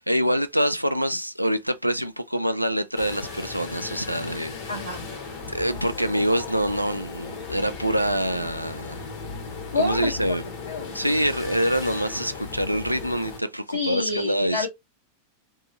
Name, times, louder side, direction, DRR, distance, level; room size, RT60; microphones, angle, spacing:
voice 1, 0.1-4.6 5.5-8.9 9.7-10.4 10.9-14.7, equal, 90° right, 0.4 m, -25 dB
sound 1, 2.9-13.4, left 4 dB, 50° left, 1.3 m, -36 dB
voice 2, 4.7-5.0 9.7-10.1 10.7-11.0 13.7-14.7, left 3 dB, 70° left, 1.2 m, -27 dB
3.6 x 2.7 x 2.8 m
figure-of-eight pair, 90°, 0 cm